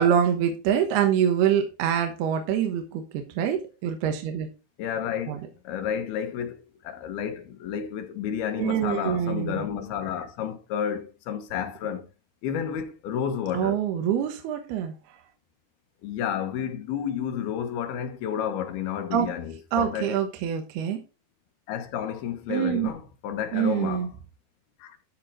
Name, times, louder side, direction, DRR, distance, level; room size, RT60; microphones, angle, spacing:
voice 1, 0.0-4.5 5.3-5.4 8.6-9.6 13.5-14.9 19.1-19.3 19.7-21.0 22.5-22.9 23.5-24.1, right 9 dB, 80° right, 3.1 m, -25 dB
voice 2, 4.8-12.1 12.4-13.8 16.0-20.1 21.7-24.1 24.8-25.0, left 8 dB, 75° left, 3.1 m, -31 dB
13.0 x 4.6 x 4.9 m
omnidirectional pair, 4.6 m